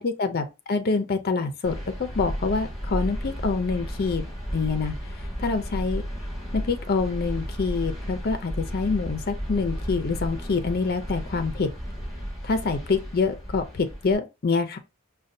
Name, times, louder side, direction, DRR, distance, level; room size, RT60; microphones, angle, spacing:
voice 1, 0.0-1.7 2.0-6.0 6.5-11.7 12.4-14.8, left 4 dB, 45° left, 0.5 m, -26 dB
sound 1, 1.6-14.1, equal, ahead, 1.6 m, -33 dB
5.2 x 2.2 x 2.6 m
head